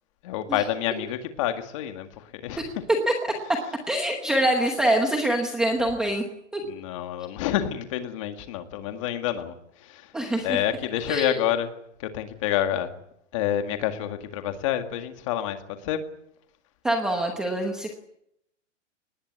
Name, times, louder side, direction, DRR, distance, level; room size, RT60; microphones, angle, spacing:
voice 1, 0.2-2.6 6.6-10.1 10.4-11.7 12.0-12.9 13.3-15.6 15.8-16.0, left 11 dB, 25° left, 7 dB, 1.9 m, -28 dB
voice 2, 3.9-6.2 6.5-6.6 10.1-10.6 11.1-11.4 16.8-17.9, right 1 dB, ahead, 2 dB, 0.9 m, -25 dB
23.0 x 19.5 x 9.5 m, 0.75 s
hypercardioid pair, 180°, 37 cm